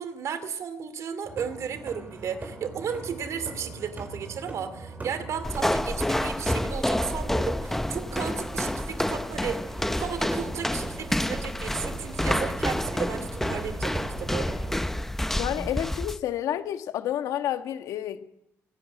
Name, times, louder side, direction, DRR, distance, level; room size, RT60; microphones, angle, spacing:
voice 1, 0.0-9.6 10.0-14.5, right 7 dB, 60° right, 2.6 m, -34 dB
sound 1, 1.2-14.8, right 3 dB, 30° right, 4.3 m, -40 dB
sound 2, 5.4-16.2, left 1 dB, 5° left, 0.7 m, -29 dB
voice 2, 15.3-18.3, left 11 dB, 80° left, 1.6 m, -30 dB
27.0 x 11.5 x 9.2 m
cardioid pair, 95°, 6 cm